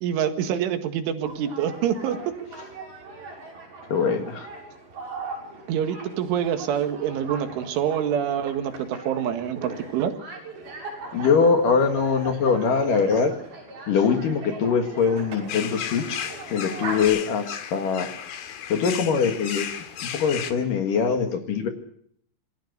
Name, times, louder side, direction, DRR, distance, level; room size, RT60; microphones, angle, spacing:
voice 1, 0.0-2.4 5.7-10.2, right 9 dB, 85° right, 7 dB, 4.2 m, -26 dB
sound 1, 1.2-17.0, right 3 dB, 55° right, 8.2 m, -39 dB
voice 2, 3.9-4.5 11.1-13.3 13.9-16.2 16.5-18.1 18.7-19.7 20.0-21.7, left 5 dB, 55° left, 5 dB, 2.8 m, -22 dB
sound 2, 15.5-20.5, left 9 dB, 75° left, 4.1 m, -34 dB
27.0 x 19.5 x 6.7 m, 0.67 s
omnidirectional pair, 5.4 m